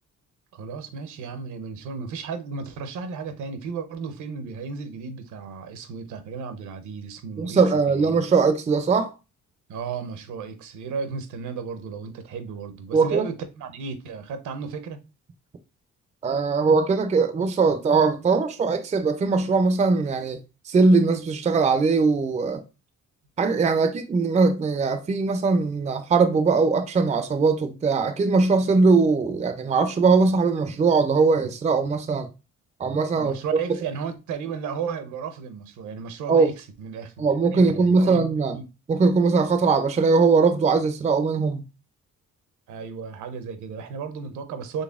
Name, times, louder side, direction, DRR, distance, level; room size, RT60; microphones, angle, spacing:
voice 1, 0.5-7.6 7.9-8.2 9.7-15.0 33.1-37.3 37.5-38.3 38.5-38.6 42.7-44.8, right 5 dB, 75° right, 0.7 m, -34 dB
voice 2, 7.4-9.1 12.9-13.3 16.2-20.4 20.7-22.6 23.4-32.3 32.8-33.4 36.3-36.5 37.2-38.6 38.9-41.6, right 4 dB, 25° right, 0.4 m, -20 dB
4.0 x 3.2 x 2.4 m
cardioid pair, 90°, 30 cm